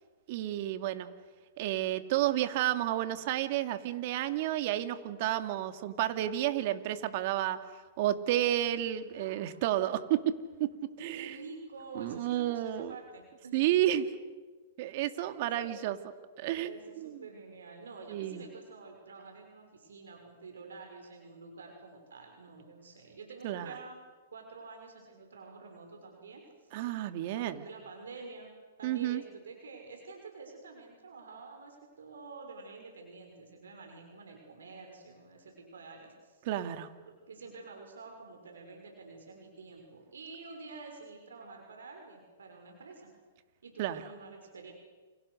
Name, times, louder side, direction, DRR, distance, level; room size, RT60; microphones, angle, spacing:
voice 1, 0.3-1.1 1.6-7.6 8.0-10.3 10.6-10.7 11.0-11.4 11.9-12.9 13.5-14.1 14.8-16.0 16.4-16.7 17.0-17.2 18.1-18.4 23.4-23.7 26.7-27.6 28.8-29.2 36.4-36.9 43.8-44.0, right 13 dB, 55° right, 9 dB, 2.4 m, -31 dB
voice 2, 11.0-13.6 15.3-15.7 16.6-24.0 24.3-26.8 27.4-28.5 28.8-36.5 37.0-43.1 43.6-44.7, right 4 dB, 90° right, 3 dB, 6.1 m, -48 dB
29.5 x 29.0 x 6.6 m, 1.4 s
hypercardioid pair, 130°, 0 cm